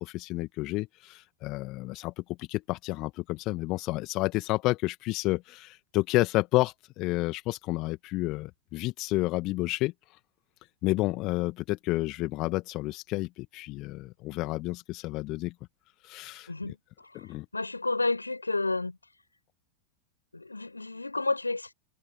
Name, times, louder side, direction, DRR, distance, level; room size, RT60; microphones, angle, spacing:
voice 1, 0.0-9.9 10.8-15.5 16.0-16.5 17.1-17.5, left 20 dB, 40° left, 2.0 m, -30 dB
voice 2, 17.5-19.0 20.3-21.7, left 3 dB, 80° left, 7.7 m, -30 dB
figure-of-eight pair, 90°, 0 cm